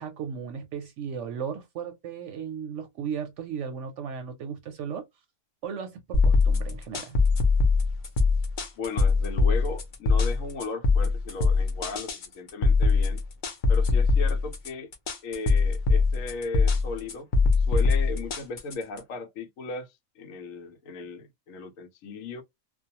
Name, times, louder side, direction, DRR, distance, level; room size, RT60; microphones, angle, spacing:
voice 1, 0.0-5.0 5.6-7.2, right 7 dB, 70° right, 0.8 m, -36 dB
sound 1, 6.1-19.0, left 4 dB, 50° left, 0.6 m, -22 dB
voice 2, 8.8-13.2 13.7-14.9 15.2-17.3 17.7-19.9 20.2-22.4, left 3 dB, 75° left, 1.0 m, -36 dB
2.4 x 2.2 x 2.7 m
omnidirectional pair, 1.4 m